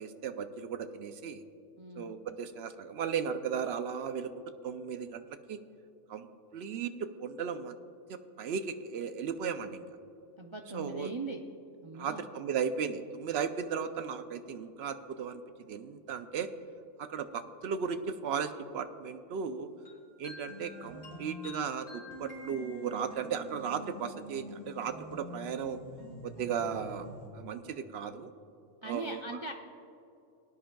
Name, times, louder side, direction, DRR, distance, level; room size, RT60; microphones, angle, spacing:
voice 1, 0.0-1.4 2.0-4.3 4.6-5.2 5.5-5.6 6.1-6.3 6.5-7.8 8.1-9.8 10.7-11.1 11.9-16.5 17.0-19.7 20.2-25.8 26.2-27.1 27.3-28.3 28.8-29.3, right 7 dB, 65° right, 10 dB, 0.8 m, -36 dB
voice 2, 1.8-2.1 10.4-11.4 11.8-12.3 28.8-29.5, right 2 dB, 50° right, 2 dB, 0.3 m, -40 dB
sound 1, 19.8-23.3, left 2 dB, 60° left, 3.4 m, -51 dB
sound 2, 20.5-21.6 22.1-27.3, equal, 80° left, 2.3 m, -47 dB
19.0 x 10.0 x 2.3 m, 2.7 s
omnidirectional pair, 1.3 m